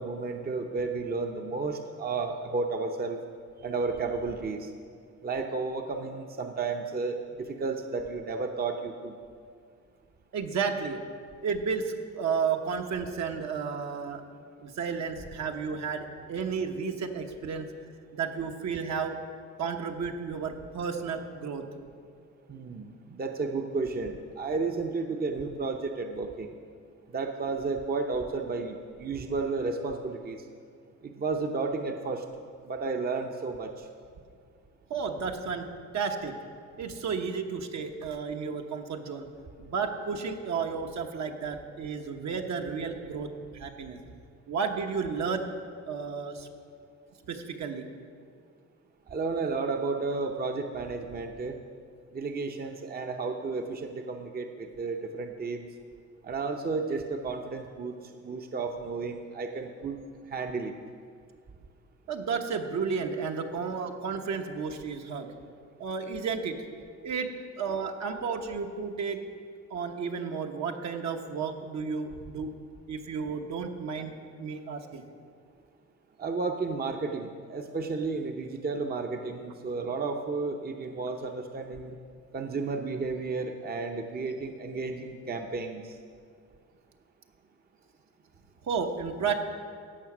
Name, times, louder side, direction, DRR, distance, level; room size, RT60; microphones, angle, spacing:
voice 1, 0.0-3.2 3.6-4.7 5.2-9.2 22.5-26.5 27.1-30.4 31.0-32.2 32.6-33.9 49.1-51.6 52.1-55.7 56.2-58.0 58.2-60.0 60.3-60.7 76.2-82.0 82.3-86.0, right 4 dB, 30° right, 4 dB, 0.7 m, -32 dB
voice 2, 10.3-11.0 11.4-14.2 14.6-17.7 18.1-19.2 19.6-21.6 34.9-35.7 35.9-36.3 36.8-39.3 39.6-44.0 44.5-45.5 45.9-46.5 47.3-47.9 62.1-65.3 65.8-66.6 67.0-67.3 67.6-69.2 69.7-72.5 72.9-75.0 88.6-89.3, right 5 dB, 65° right, 4 dB, 1.1 m, -32 dB
16.0 x 5.8 x 6.1 m, 2.2 s
cardioid pair, 90°, 30 cm